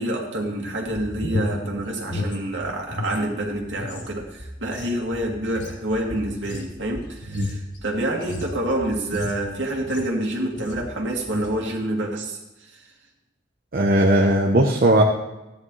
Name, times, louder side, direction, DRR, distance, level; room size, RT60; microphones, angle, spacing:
voice 1, 0.0-12.8, right 1 dB, 75° right, -1 dB, 2.4 m, -27 dB
sound 1, 0.9-3.2 3.5-10.2 10.6-10.9 11.2-11.6, left 1 dB, 80° left, 3.5 m, -33 dB
voice 2, 13.7-15.0, right 1 dB, 50° right, 0 dB, 0.9 m, -17 dB
14.5 x 10.5 x 3.2 m, 1.0 s
head